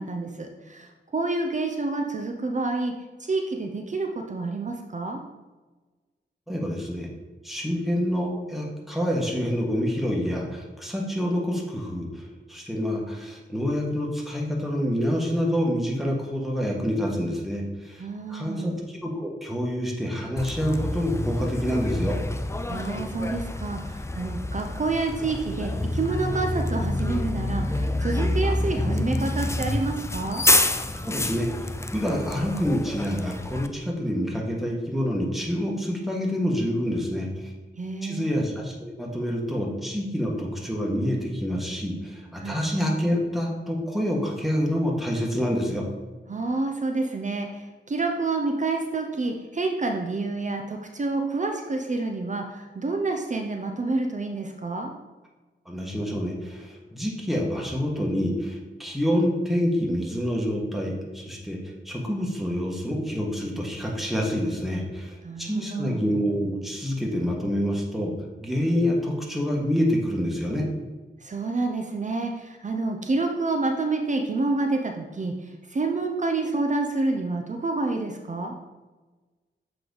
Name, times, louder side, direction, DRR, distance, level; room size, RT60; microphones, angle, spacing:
voice 1, 0.0-2.9 3.2-5.2 18.0-18.7 22.7-30.4 37.8-38.3 42.4-42.6 46.3-54.9 65.2-66.0 71.2-78.5, right 3 dB, 40° right, 3 dB, 0.6 m, -28 dB
voice 2, 6.5-7.1 7.4-12.2 12.5-18.0 18.3-22.2 31.0-31.5 31.9-37.5 38.0-45.8 55.6-68.1 68.4-70.7, equal, ahead, -1 dB, 1.5 m, -27 dB
Bus, 20.4-33.7, left 2 dB, 15° left, 0.4 m, -27 dB
7.8 x 3.3 x 3.9 m, 1.2 s
cardioid pair, 65°, 19 cm